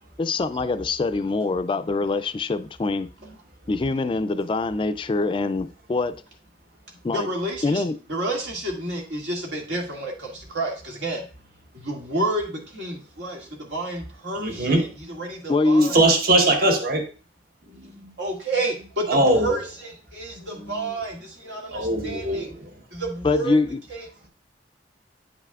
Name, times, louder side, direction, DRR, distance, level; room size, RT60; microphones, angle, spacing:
voice 1, 0.2-3.1 3.7-6.2 7.0-7.3 7.6-8.0 15.5-15.9 23.2-23.8, left 3 dB, 30° left, 0.3 m, -24 dB
voice 2, 7.1-7.8 8.1-11.2 11.7-16.0 17.7-22.5 22.9-23.6 23.9-24.3, right 2 dB, 85° right, 2.0 m, -30 dB
voice 3, 14.3-14.8 15.9-17.0 19.1-19.5 21.7-22.7, right 1 dB, 55° right, 1.2 m, -20 dB
9.0 x 5.6 x 2.4 m
head